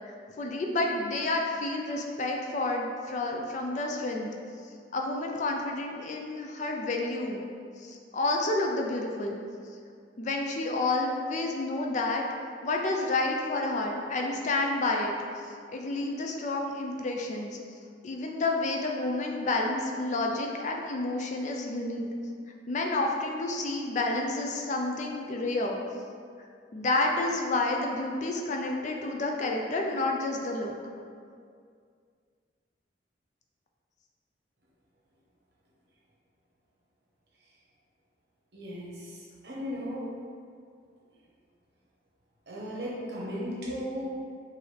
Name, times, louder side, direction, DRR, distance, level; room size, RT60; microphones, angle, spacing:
voice 1, 0.0-4.3 4.9-7.4 7.8-9.4 10.2-12.2 12.6-15.1 15.7-17.6 18.0-22.1 22.7-25.8 26.7-30.7, left 2 dB, 40° left, 1 dB, 0.4 m, -30 dB
voice 2, 38.5-40.1 42.5-44.0, equal, 60° right, -5 dB, 1.0 m, -36 dB
4.8 x 2.6 x 3.2 m, 2.2 s
head